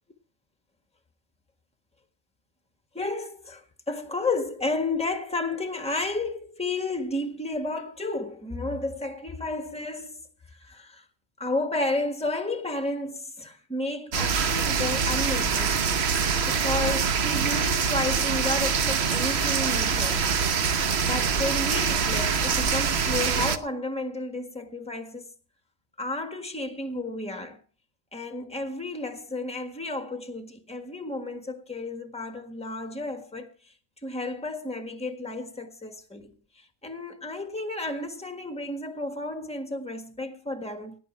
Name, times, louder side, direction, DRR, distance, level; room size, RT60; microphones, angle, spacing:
voice 1, 2.9-10.2 10.6-11.0 11.4-15.8 16.5-20.3 21.1-25.3 26.0-27.6 28.1-33.5 34.0-41.0, left 2 dB, 5° left, 1.5 m, -32 dB
sound 1, 14.1-23.6, right 6 dB, 70° right, 1.2 m, -25 dB
17.5 x 9.3 x 4.4 m
omnidirectional pair, 1.1 m